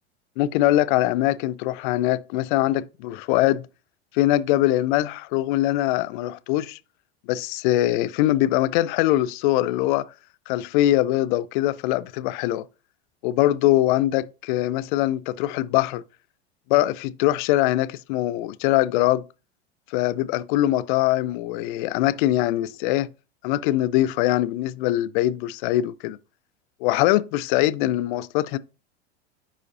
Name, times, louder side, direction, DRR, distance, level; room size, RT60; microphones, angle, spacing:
voice 1, 0.4-3.7 4.1-6.8 7.3-10.1 10.5-12.6 13.2-16.0 16.7-19.2 19.9-23.1 23.4-26.2 26.8-28.6, left 15 dB, 50° left, 0.5 m, -22 dB
9.8 x 4.9 x 2.6 m
figure-of-eight pair, 85°, 34 cm